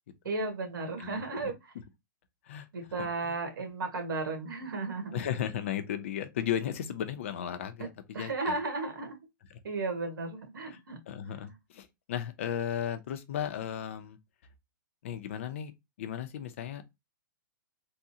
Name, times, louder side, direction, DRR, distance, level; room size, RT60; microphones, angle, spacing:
voice 1, 0.2-1.7 2.7-5.2 7.8-7.9 8.1-9.2 9.6-11.0 11.2-11.5, right 3 dB, 75° right, 1.5 m, -34 dB
voice 2, 1.0-1.5 2.5-2.7 5.1-7.9 8.2-8.5 11.1-14.2 15.0-15.7 16.0-16.8, left 9 dB, 35° left, 0.5 m, -35 dB
3.6 x 2.0 x 2.6 m
hypercardioid pair, 175°, 11 cm